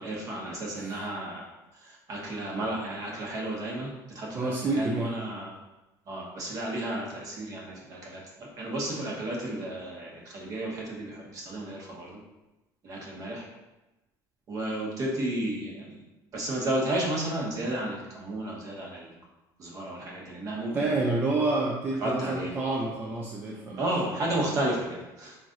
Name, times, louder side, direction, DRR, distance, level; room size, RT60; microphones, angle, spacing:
voice 1, 0.0-1.4 1.8-5.6 6.1-12.2 12.8-13.4 14.5-16.0 16.3-19.2 19.6-20.9 22.0-22.5 23.8-25.4, right 1 dB, 40° right, -2 dB, 1.1 m, -33 dB
voice 2, 4.3-5.1 20.7-23.8 24.4-24.5, right 2 dB, 20° right, -3 dB, 0.5 m, -28 dB
3.7 x 3.2 x 3.9 m, 1.0 s
cardioid pair, 150°, 8 cm